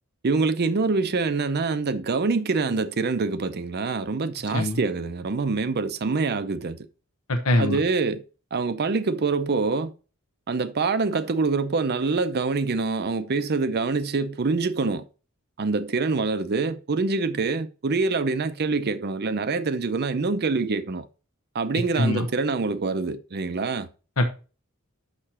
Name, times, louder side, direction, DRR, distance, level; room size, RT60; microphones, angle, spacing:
voice 1, 0.2-6.8 7.6-8.2 8.5-9.9 10.5-15.0 15.6-21.1 21.5-23.9, right 4 dB, 45° right, 0.6 m, -25 dB
voice 2, 7.3-7.8 21.9-22.3 24.2-24.3, left 1 dB, 75° left, 1.1 m, -22 dB
6.6 x 6.0 x 4.2 m
head